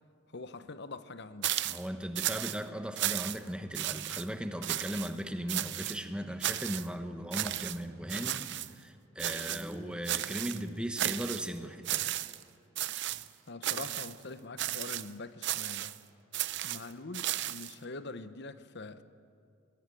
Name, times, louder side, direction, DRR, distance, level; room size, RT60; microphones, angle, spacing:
voice 1, 0.3-1.6 13.5-15.9 16.6-19.0, left 3 dB, 55° left, 0.9 m, -44 dB
sound 1, 1.4-1.9 2.2-2.6 3.0-3.5 3.7-4.2 4.6-5.1 5.5-6.0 6.4-6.9 7.3-7.8 8.1-8.7 9.2-9.7 10.1-10.6 11.0-11.5 11.8-12.4 12.8-13.3 13.6-14.1 14.6-15.1 15.4-16.0 16.3-17.7, right 13 dB, 55° right, 0.6 m, -34 dB
voice 2, 1.6-12.1, equal, 5° right, 1.1 m, -37 dB
20.5 x 17.0 x 9.9 m
head